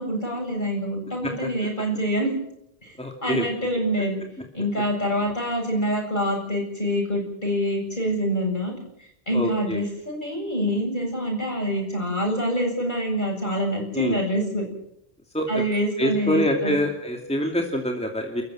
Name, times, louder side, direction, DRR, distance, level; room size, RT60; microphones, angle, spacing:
voice 1, 0.0-2.3 2.8-2.9 3.2-4.2 4.5-8.7 9.0-14.7 15.5-16.8, equal, 50° left, 0 dB, 8.2 m, -26 dB
voice 2, 3.0-3.5 9.3-9.8 13.9-14.2 15.3-15.6 16.0-18.4, equal, 5° left, 2 dB, 2.6 m, -25 dB
29.0 x 14.5 x 7.9 m, 0.76 s
omnidirectional pair, 1.1 m